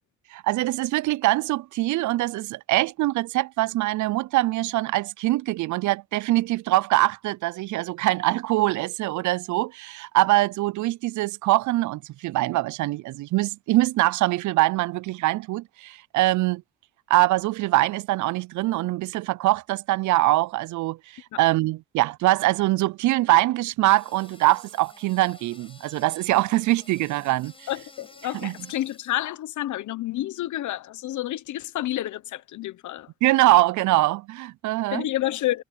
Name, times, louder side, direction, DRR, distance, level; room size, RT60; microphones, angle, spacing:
voice 1, 0.3-16.6 17.1-27.5 28.4-28.5 33.2-35.1, right 17 dB, 75° right, 0.5 m, -23 dB
sound 1, 23.9-29.3, left 2 dB, 20° left, 7.1 m, -51 dB
voice 2, 27.7-33.1 34.9-35.6, left 14 dB, 75° left, 1.0 m, -29 dB
cardioid pair, 90°, 30 cm